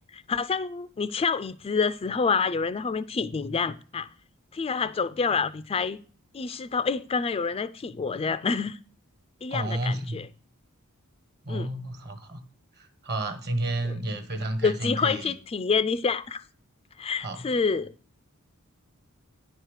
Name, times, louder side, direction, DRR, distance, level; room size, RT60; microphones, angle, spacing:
voice 1, 0.1-4.1 4.5-6.0 6.3-8.8 9.4-10.3 11.5-11.7 13.8-13.9 14.6-16.4 17.0-17.9, left 5 dB, 25° left, 0.3 m, -27 dB
voice 2, 9.5-10.2 11.4-12.4 12.8-15.3 17.2-17.4, right 1 dB, 50° right, 1.4 m, -31 dB
9.8 x 4.6 x 6.5 m
head